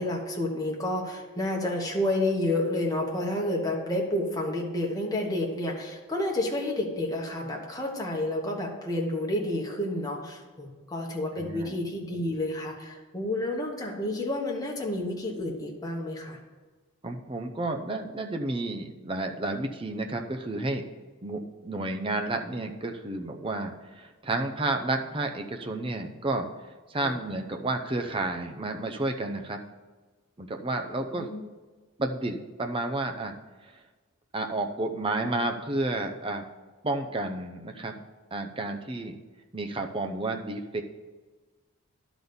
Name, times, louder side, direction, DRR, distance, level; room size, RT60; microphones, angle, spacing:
voice 1, 0.0-16.4 27.0-27.2 31.1-31.4, left 1 dB, 15° left, -2 dB, 1.3 m, -30 dB
voice 2, 11.4-11.8 17.0-20.9 21.2-26.5 26.9-29.6 30.4-31.3 32.0-33.3 34.3-36.4 36.8-38.0 38.3-39.2 39.5-40.8, right 2 dB, 25° right, 4 dB, 0.6 m, -31 dB
11.0 x 4.1 x 6.9 m, 1.3 s
head